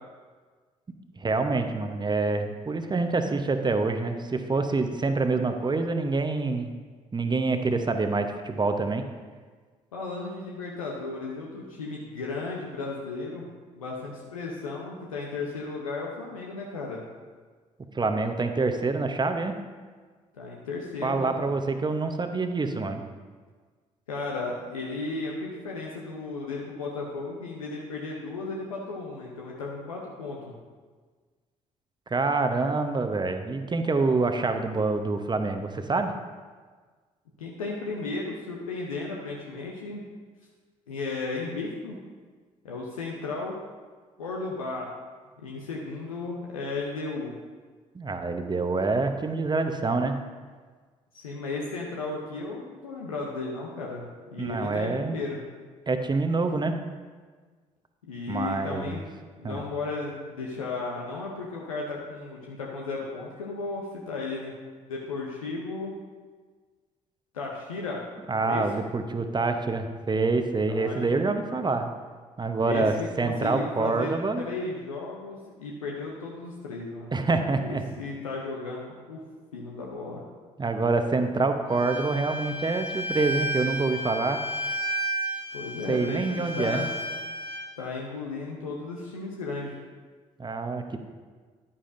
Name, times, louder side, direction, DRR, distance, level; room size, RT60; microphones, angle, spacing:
voice 1, 1.2-6.7 7.1-9.0 17.9-19.5 21.0-23.0 32.1-36.1 47.9-50.1 54.4-55.2 55.9-56.8 58.3-59.0 59.4-59.6 68.3-71.9 72.4-74.4 77.1-77.8 80.6-84.4 85.9-86.8 90.4-91.0, right 3 dB, 25° right, 7 dB, 0.9 m, -26 dB
voice 2, 9.9-13.5 13.7-17.0 20.3-21.5 24.1-30.5 37.4-40.0 40.9-42.0 42.6-43.6 44.2-44.9 45.4-47.3 51.1-55.4 58.1-59.1 59.4-64.5 64.9-65.9 67.3-68.1 68.4-68.9 70.7-71.7 72.6-77.2 77.6-79.2 79.5-80.2 85.5-86.9 87.8-89.8, left 3 dB, 90° left, -2 dB, 0.7 m, -35 dB
Bowed string instrument, 81.7-87.6, right 1 dB, 85° right, 2.6 m, -32 dB
10.0 x 9.5 x 2.6 m, 1.5 s
hypercardioid pair, 45°, 17 cm